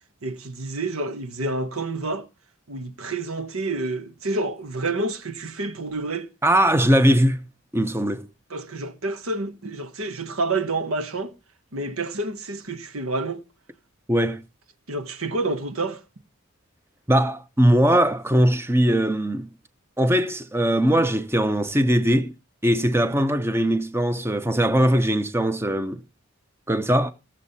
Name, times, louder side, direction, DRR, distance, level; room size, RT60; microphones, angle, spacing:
voice 1, 0.2-2.3 2.7-6.3 8.5-11.3 11.7-13.4 14.9-16.0, right 2 dB, 85° right, 1.4 m, -28 dB
voice 2, 6.4-7.4 7.7-8.3 14.1-14.4 17.1-19.5 20.0-22.3 22.6-26.0 26.7-27.1, equal, 10° right, 0.7 m, -20 dB
16.5 x 7.4 x 4.1 m
head